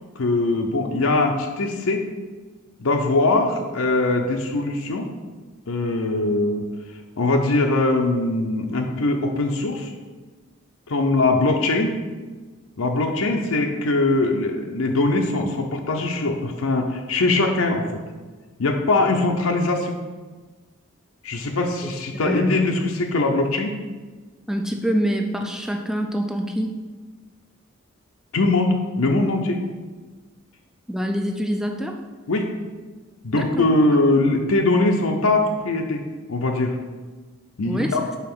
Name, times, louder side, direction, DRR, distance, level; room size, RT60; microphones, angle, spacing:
voice 1, 0.2-2.0 2.8-5.1 5.7-6.7 7.2-9.9 10.9-11.9 12.8-17.9 18.6-20.0 21.2-23.8 28.3-29.6 32.3-32.5 33.2-36.8 37.6-38.0, left 2 dB, 80° left, 2 dB, 0.7 m, -21 dB
voice 2, 22.1-22.6 24.5-26.8 30.9-32.0 33.3-33.7 37.6-38.0, equal, 5° right, 3 dB, 0.4 m, -25 dB
5.7 x 4.1 x 6.0 m, 1.3 s
head